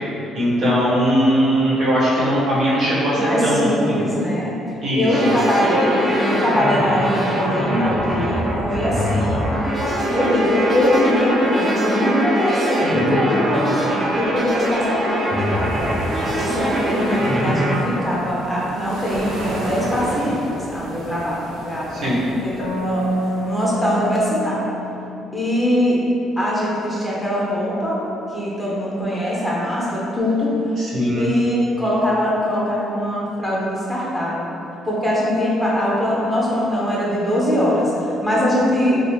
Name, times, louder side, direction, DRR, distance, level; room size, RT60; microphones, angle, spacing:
voice 1, 0.3-4.1 4.8-5.4 21.9-22.2 30.8-31.3, equal, 60° right, -8 dB, 1.2 m, -19 dB
voice 2, 3.1-4.5 4.9-9.4 10.1-16.0 16.4-22.2 22.4-23.1 23.4-24.7 25.3-26.0 26.4-28.0 28.3-30.6 31.1-34.5 34.8-39.0, left 1 dB, 5° right, -6 dB, 0.8 m, -22 dB
sound 1, 5.1-17.8, equal, 30° right, 0.7 m, -22 dB
sound 2, 15.1-24.3, right 1 dB, 90° right, 0.5 m, -33 dB
sound 3, 22.6-26.1, right 1 dB, 85° left, 0.4 m, -28 dB
3.8 x 2.0 x 3.1 m, 2.9 s
cardioid pair, 85°, 0 cm